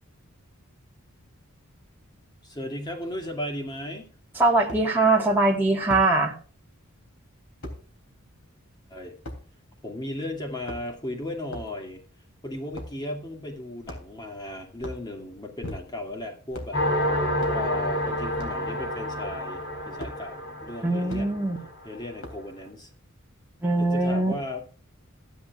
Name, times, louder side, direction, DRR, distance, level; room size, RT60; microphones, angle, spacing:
voice 1, 2.4-4.1 8.9-9.2 9.8-12.0 12.4-16.8 17.5-21.4 21.8-22.9 23.8-24.6, left 1 dB, 20° left, 3 dB, 2.4 m, -36 dB
voice 2, 4.4-6.3 20.8-21.6 23.6-24.3, right 2 dB, 10° right, -3 dB, 1.8 m, -22 dB
sound 1, 4.7-4.9 5.9-6.1 7.6-7.8 9.2-9.4 10.5-11.0 11.5-11.7 12.7-13.0 13.8-14.3 14.7-15.1 15.6-16.1 16.5-16.8 17.4-17.6 18.3-18.6 20.0-20.2 21.1-21.3 22.2-22.5, left 1 dB, 80° left, 3.3 m, -38 dB
sound 2, 16.7-22.1, left 1 dB, 60° left, 5.3 m, -29 dB
15.0 x 10.0 x 2.5 m, 0.39 s
head